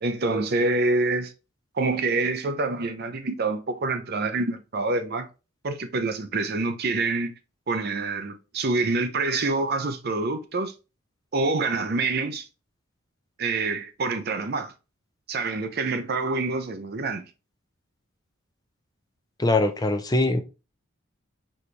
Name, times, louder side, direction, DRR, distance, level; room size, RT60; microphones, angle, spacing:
voice 1, 0.0-1.3 1.8-5.3 5.6-7.3 7.7-10.7 11.3-12.5 13.4-14.7 15.3-17.3, right 3 dB, 50° right, 0.6 m, -26 dB
voice 2, 19.4-20.4, left 2 dB, 20° left, 0.5 m, -22 dB
4.3 x 3.3 x 3.1 m
head